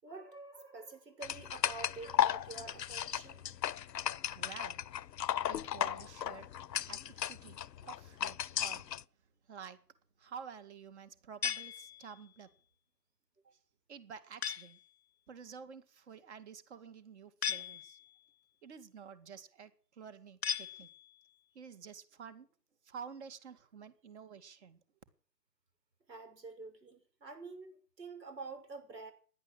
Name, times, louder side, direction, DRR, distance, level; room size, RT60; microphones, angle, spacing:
voice 1, 0.0-3.5 13.4-13.5 26.1-29.1, right 3 dB, 80° right, 6.4 m, -48 dB
sound 1, 1.2-9.0, left 10 dB, 80° left, 0.7 m, -35 dB
voice 2, 4.2-5.0 5.4-8.9 9.5-9.8 10.2-12.5 13.9-14.8 15.3-18.0 18.6-20.9 21.5-22.5 22.8-24.8, right 7 dB, 40° right, 2.2 m, -50 dB
sound 2, 11.4-12.4 14.4-14.9 17.4-18.3 20.4-21.3, left 8 dB, 40° left, 0.7 m, -39 dB
16.5 x 10.5 x 7.8 m
hypercardioid pair, 150°, 49 cm